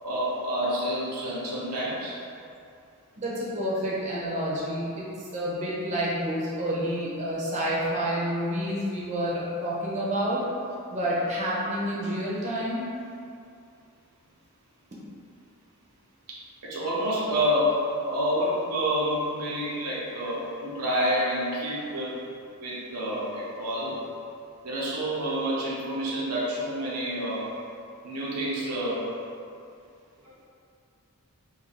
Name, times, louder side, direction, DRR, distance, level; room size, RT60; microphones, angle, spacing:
voice 1, 0.0-2.2 16.3-22.2 22.6-24.0 24.6-27.5 28.0-29.1, equal, 85° right, -6 dB, 0.8 m, -28 dB
voice 2, 3.2-10.4 10.9-12.9, equal, 30° right, -7 dB, 0.6 m, -29 dB
2.6 x 2.5 x 4.1 m, 2.5 s
head